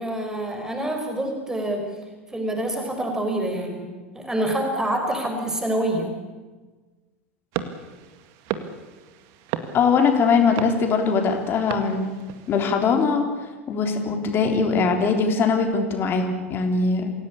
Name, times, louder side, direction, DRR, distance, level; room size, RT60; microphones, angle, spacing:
voice 1, 0.0-1.9 2.3-3.9 4.1-6.1, right 1 dB, 10° right, 3 dB, 4.7 m, -26 dB
sound 1, 7.5-12.7, right 10 dB, 50° right, 2.0 m, -35 dB
voice 2, 9.7-12.1 12.5-13.3 13.7-17.1, left 5 dB, 35° left, 4 dB, 3.6 m, -21 dB
27.5 x 17.0 x 8.5 m, 1.3 s
figure-of-eight pair, 80°, 7 cm